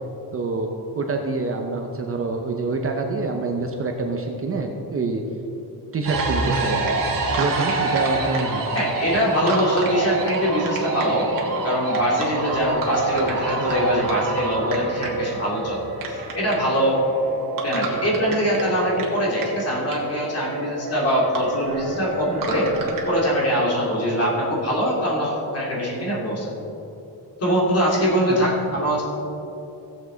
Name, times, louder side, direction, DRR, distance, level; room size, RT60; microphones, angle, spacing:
voice 1, 0.3-5.2 5.9-7.0 7.3-8.6 28.3-28.4, right 3 dB, 35° right, 3 dB, 0.7 m, -26 dB
sound 1, 6.1-23.2, right 3 dB, 55° right, 1.8 m, -27 dB
voice 2, 8.7-11.3 11.6-15.8 16.1-17.0 17.6-22.7 23.0-26.6 27.4-29.0, equal, 35° left, -5 dB, 2.9 m, -23 dB
16.5 x 7.5 x 4.0 m, 2.9 s
cardioid pair, 155°, 40 cm